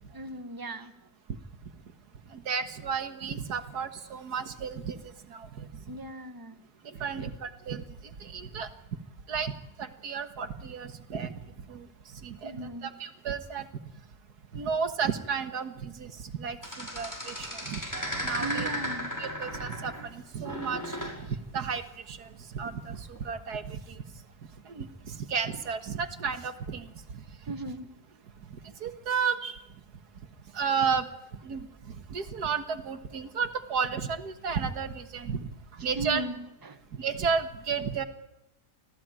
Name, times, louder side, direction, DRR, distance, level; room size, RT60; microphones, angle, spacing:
voice 1, 0.1-1.1 5.9-6.6 6.9-7.3 12.4-12.9 18.4-19.1 27.5-27.9 35.9-36.8, right 1 dB, 15° right, 8 dB, 1.4 m, -38 dB
voice 2, 2.3-5.0 5.3-5.7 7.0-7.8 8.2-8.7 9.3-9.5 9.8-11.3 11.7-11.9 12.2-13.7 14.5-17.8 18.2-18.7 19.2-21.0 21.3-21.8 22.1-22.3 22.5-24.0 24.7-26.8 28.8-29.6 30.5-31.1 31.4-31.7 32.1-35.4 35.8-36.2 37.0-38.0, right 6 dB, 85° right, 9 dB, 2.0 m, -32 dB
sound 1, 16.6-20.1 20.4-21.2 22.9-23.2, equal, 10° left, 5.4 m, -35 dB
26.0 x 16.0 x 9.0 m, 0.86 s
omnidirectional pair, 1.6 m